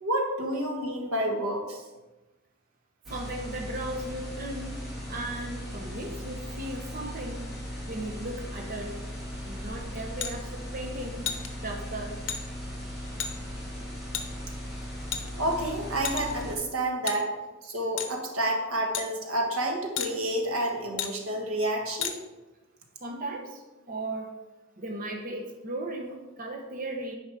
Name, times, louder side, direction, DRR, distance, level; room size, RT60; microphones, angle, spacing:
voice 1, 0.0-1.8 15.4-17.3 17.6-22.2, right 1 dB, 90° right, 2 dB, 1.5 m, -29 dB
sound 1, 3.0-16.5, equal, ahead, 2.5 m, -38 dB
voice 2, 3.1-7.6 7.9-9.0 9.5-12.2 23.0-24.3 24.8-27.1, right 1 dB, 40° right, 1 dB, 0.9 m, -37 dB
sound 2, 10.2-10.3 11.2-11.5 12.3-12.4 13.2-13.3 14.1-14.3 15.1-15.5 16.0-16.4 17.1-17.2 18.0-18.2 18.9-19.1 20.0-20.1 21.0-21.1 22.0-22.1, left 8 dB, 60° left, 0.8 m, -31 dB
9.3 x 5.2 x 4.9 m, 1.1 s
head